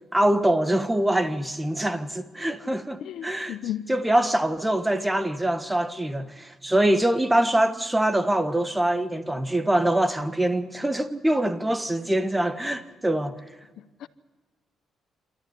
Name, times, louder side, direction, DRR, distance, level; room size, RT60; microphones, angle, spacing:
voice 1, 0.1-3.6 3.9-13.3, right 1 dB, 10° right, 1.4 m, -24 dB
voice 2, 3.0-3.9 14.0-14.1, left 12 dB, 75° left, 0.8 m, -33 dB
27.5 x 14.0 x 9.9 m
cardioid pair, 90°, 0 cm